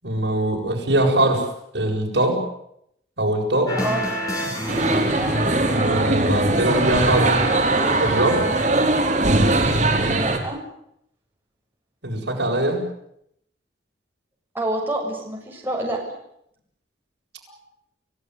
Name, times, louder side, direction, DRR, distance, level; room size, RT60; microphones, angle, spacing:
voice 1, 0.0-1.5 1.7-2.4 3.2-3.8 4.4-4.5 5.5-7.3 8.0-8.5 12.0-12.8, right 1 dB, 75° right, 1 dB, 7.5 m, -22 dB
sound 1, 3.7-8.7, equal, 20° left, 7.1 m, -28 dB
sound 2, 4.7-10.4, right 2 dB, 40° right, 4.5 m, -20 dB
voice 2, 9.9-10.6 14.5-16.0, right 1 dB, 10° right, -2 dB, 7.2 m, -27 dB
29.5 x 17.0 x 9.7 m, 0.76 s
head